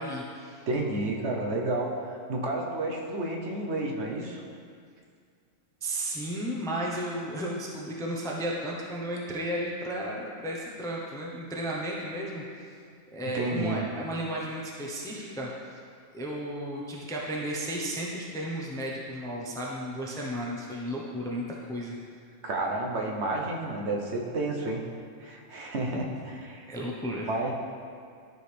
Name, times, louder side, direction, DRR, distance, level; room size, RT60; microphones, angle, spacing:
voice 1, 0.0-0.6 5.8-12.7 13.1-15.5 16.1-22.0 26.7-27.3, equal, 5° left, -3 dB, 0.6 m, -34 dB
voice 2, 0.7-1.9 2.3-4.4 13.3-13.9 22.4-24.8 25.2-26.7 27.3-27.5, right 2 dB, 60° right, 0 dB, 1.2 m, -30 dB
13.0 x 4.9 x 3.4 m, 2.2 s
omnidirectional pair, 1.4 m